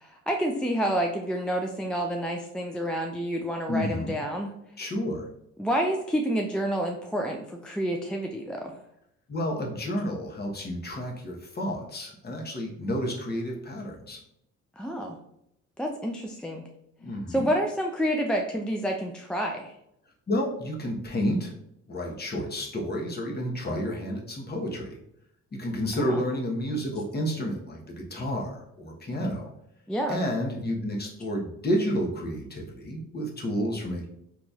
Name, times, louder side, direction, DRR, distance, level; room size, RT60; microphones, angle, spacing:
voice 1, 0.0-4.5 5.6-8.8 14.8-15.2 15.8-16.7 17.3-19.7 25.9-26.2 29.9-30.2, equal, 5° left, 2 dB, 0.3 m, -29 dB
voice 2, 3.7-4.1 4.8-5.3 9.3-14.2 17.0-17.5 20.3-21.5 21.9-24.9 25.5-29.4 30.1-34.1, equal, 35° left, -1 dB, 1.0 m, -30 dB
3.9 x 2.9 x 2.3 m, 0.77 s
cardioid pair, 90°, 30 cm